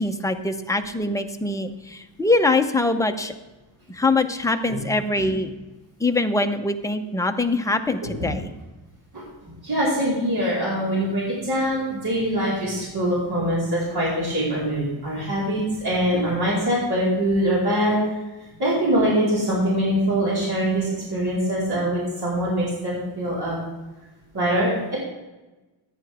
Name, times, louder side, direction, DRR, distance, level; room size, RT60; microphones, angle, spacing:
voice 1, 0.0-3.3 3.9-5.5 6.0-8.5, left 2 dB, 5° left, 5 dB, 0.6 m, -23 dB
voice 2, 9.1-18.0 18.6-23.6 24.3-25.0, equal, 50° right, -7 dB, 4.3 m, -23 dB
14.0 x 10.0 x 3.5 m, 1.1 s
wide cardioid pair, 155°, 48 cm